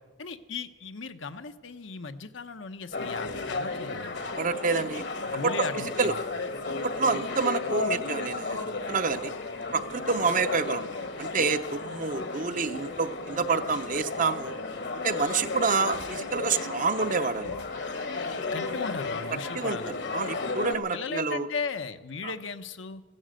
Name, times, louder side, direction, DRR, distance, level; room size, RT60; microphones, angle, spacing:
voice 1, 0.2-4.2 5.3-6.2 18.5-20.0 20.7-23.0, left 4 dB, 75° left, 8 dB, 0.9 m, -37 dB
sound 1, 2.9-20.7, left 3 dB, 60° left, 1.3 m, -34 dB
voice 2, 4.4-5.1 5.4-6.1 6.8-9.3 9.7-10.9 11.2-14.5 15.0-17.5 19.5-19.8 20.1-21.5 22.2-22.3, right 4 dB, 40° right, 10 dB, 0.7 m, -28 dB
16.0 x 12.0 x 7.7 m, 1.3 s
head